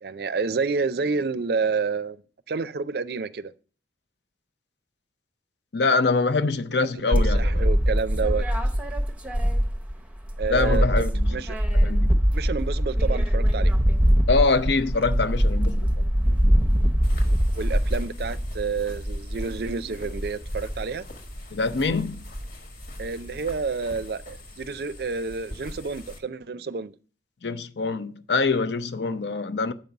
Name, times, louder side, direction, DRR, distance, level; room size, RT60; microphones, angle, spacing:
voice 1, 0.0-2.2 2.5-3.5 7.0-8.5 10.4-11.6 12.3-13.7 17.2-21.0 23.0-26.9, right 4 dB, 55° right, 0.4 m, -29 dB
voice 2, 5.7-7.6 10.5-11.3 11.7-12.1 14.3-16.0 21.5-22.2 27.4-29.7, left 3 dB, 70° left, 0.6 m, -24 dB
sound 1, 7.1-10.0 10.3-18.0, equal, 5° right, 0.7 m, -22 dB
sound 2, 17.0-26.2, equal, 50° left, 1.4 m, -36 dB
7.7 x 5.3 x 5.8 m
head